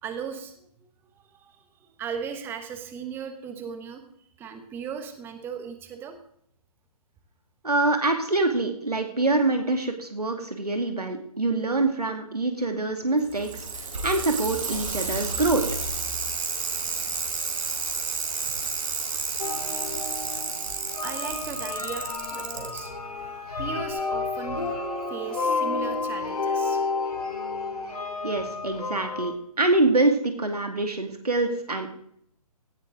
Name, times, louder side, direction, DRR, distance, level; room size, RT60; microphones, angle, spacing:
voice 1, 0.0-0.7 1.2-4.0 4.4-6.1 19.4-19.7 20.3-20.5 21.0-22.9 23.6-24.6 25.1-26.8, right 7 dB, 10° right, 7 dB, 1.1 m, -37 dB
voice 2, 7.6-13.5 13.8-15.6 28.2-31.9, right 2 dB, 85° right, 5 dB, 2.3 m, -25 dB
Bicycle, 13.2-22.8 23.9-24.0, right 4 dB, 55° right, 4.3 m, -31 dB
sound 1, 19.4-29.3, left 4 dB, 75° left, 3.0 m, -31 dB
17.5 x 11.5 x 3.9 m, 0.69 s
figure-of-eight pair, 140°, 20 cm